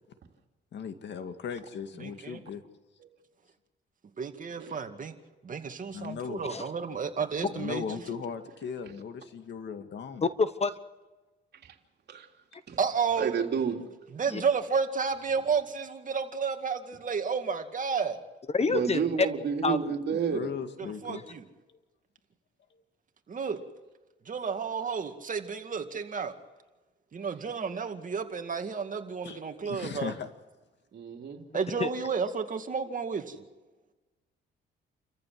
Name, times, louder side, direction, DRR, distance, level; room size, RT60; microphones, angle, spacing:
voice 1, 0.7-2.6 5.9-6.4 7.5-10.3 20.3-21.2 29.2-29.4 29.7-30.3, left 7 dB, 65° left, 8 dB, 2.1 m, -37 dB
voice 2, 2.0-2.4 4.2-5.2 5.4-7.9 12.8-13.4 14.1-18.2 20.8-21.4 23.3-23.6 24.3-26.3 27.1-30.1 31.5-33.4, right 5 dB, 40° right, 6 dB, 2.3 m, -31 dB
voice 3, 10.2-10.8 14.3-14.4 18.5-19.3 19.6-19.8 21.1-21.2 31.8-31.9, left 4 dB, 30° left, 13 dB, 1.1 m, -27 dB
voice 4, 13.2-13.8 18.7-20.5 30.9-31.4, right 6 dB, 60° right, 2 dB, 3.2 m, -30 dB
29.0 x 14.5 x 7.7 m, 1.2 s
cardioid pair, 90°, 20 cm